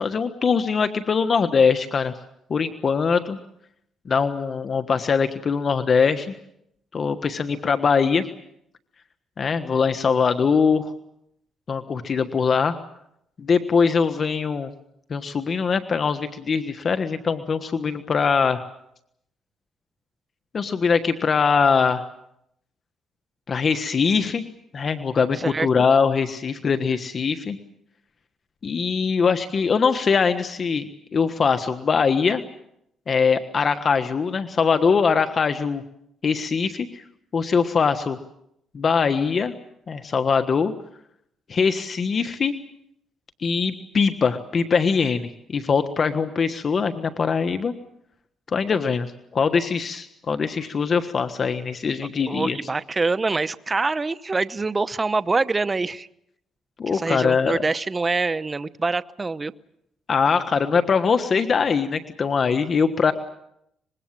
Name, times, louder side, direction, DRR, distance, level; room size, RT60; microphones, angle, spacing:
voice 1, 0.0-2.1 2.5-3.4 4.1-6.3 6.9-8.2 9.4-10.8 11.7-12.8 13.4-14.7 15.1-18.6 20.5-22.1 23.5-24.4 24.7-27.6 28.6-30.9 31.1-32.4 33.1-35.8 36.2-37.0 37.3-38.2 38.7-39.5 39.9-40.7 41.5-42.5 43.4-47.7 48.5-52.6 56.8-57.6 60.1-63.1, left 5 dB, 45° left, 9 dB, 1.4 m, -22 dB
voice 2, 25.3-25.7 52.3-56.1 56.9-59.5, right 3 dB, 25° right, 14 dB, 0.9 m, -25 dB
25.0 x 21.5 x 7.6 m, 0.76 s
cardioid pair, 90°, 0 cm